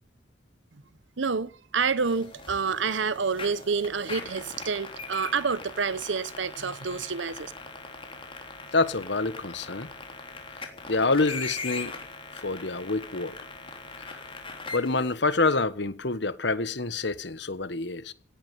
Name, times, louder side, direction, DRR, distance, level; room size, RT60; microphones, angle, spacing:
voice 1, 1.2-7.5, right 5 dB, 80° right, 0.9 m, -28 dB
sound 1, 2.0-15.1, left 4 dB, 30° left, 3.4 m, -41 dB
voice 2, 8.7-9.9 10.9-12.0 12.3-13.3 14.0-14.2 14.7-18.1, left 3 dB, 65° left, 1.3 m, -27 dB
17.5 x 8.7 x 9.3 m
head